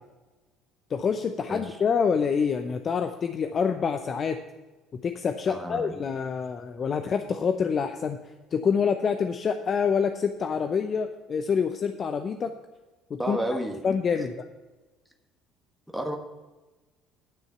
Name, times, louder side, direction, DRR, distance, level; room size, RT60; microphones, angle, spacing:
voice 1, 0.9-4.4 5.0-8.2 8.5-12.5 13.1-13.4 13.8-14.3, left 6 dB, 40° left, 7 dB, 0.7 m, -26 dB
voice 2, 5.5-5.9 13.2-13.8 14.1-14.3 15.9-16.2, right 1 dB, ahead, 3 dB, 1.4 m, -31 dB
10.5 x 6.4 x 6.8 m, 1.2 s
hypercardioid pair, 60°, 0 cm